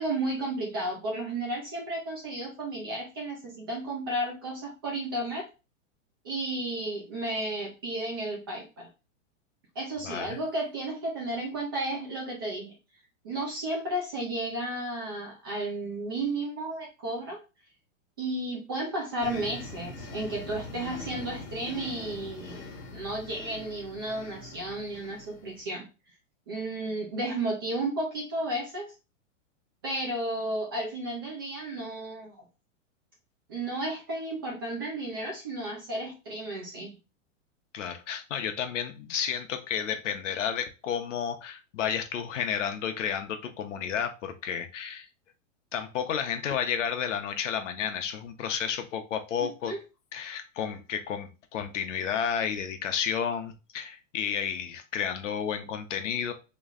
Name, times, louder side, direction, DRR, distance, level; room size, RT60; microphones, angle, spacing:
voice 1, 0.0-5.5 6.2-8.9 9.8-12.7 13.2-17.4 18.2-25.9 26.5-28.9 29.8-32.5 33.5-37.0 49.4-49.8, right 1 dB, 20° right, -1 dB, 0.4 m, -33 dB
voice 2, 10.0-10.4 37.7-45.1 45.7-49.7 50.1-56.3, left 8 dB, 70° left, 7 dB, 0.8 m, -31 dB
sound 1, 19.2-25.6, left 2 dB, 45° left, 1.3 m, -43 dB
3.2 x 3.1 x 3.6 m, 0.29 s
supercardioid pair, 175°, 39 cm